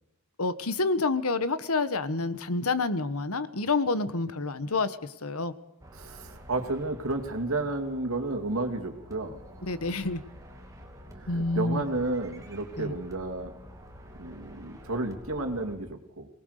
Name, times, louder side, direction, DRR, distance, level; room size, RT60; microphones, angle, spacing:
voice 1, 0.4-5.5 9.6-10.2 11.3-11.8 12.8-12.9, left 3 dB, 80° left, 13 dB, 1.3 m, -28 dB
sound 1, 5.8-15.8, equal, 15° right, 2.8 m, -48 dB
voice 2, 6.0-9.4 11.2-13.5 14.2-16.3, right 2 dB, 70° right, 5 dB, 2.7 m, -32 dB
23.5 x 19.0 x 6.7 m, 0.76 s
head